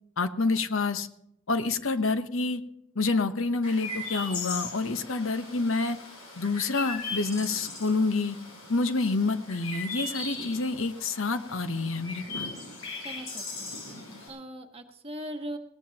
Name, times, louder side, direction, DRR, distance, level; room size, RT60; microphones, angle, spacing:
voice 1, 0.2-1.1 1.5-2.6 3.0-6.0 6.4-8.4 8.7-12.5, left 3 dB, 65° left, 10 dB, 1.0 m, -28 dB
Chirp tweet, 3.6-14.3, left 3 dB, 85° left, 7.1 m, -39 dB
voice 2, 13.0-13.7 14.3-15.6, equal, 30° right, 4 dB, 1.5 m, -39 dB
20.5 x 18.5 x 2.9 m, 0.77 s
head